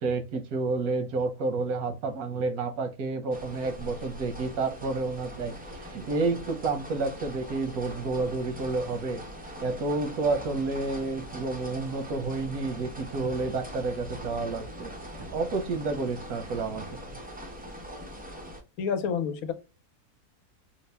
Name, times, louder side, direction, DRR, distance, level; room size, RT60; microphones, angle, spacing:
voice 1, 0.0-9.2 9.6-16.9, right 3 dB, 90° right, 1.3 m, -30 dB
sound 1, 3.3-18.6, equal, 15° right, 0.3 m, -42 dB
voice 2, 18.8-19.5, left 6 dB, 80° left, 1.1 m, -28 dB
3.9 x 2.1 x 3.2 m
omnidirectional pair, 1.5 m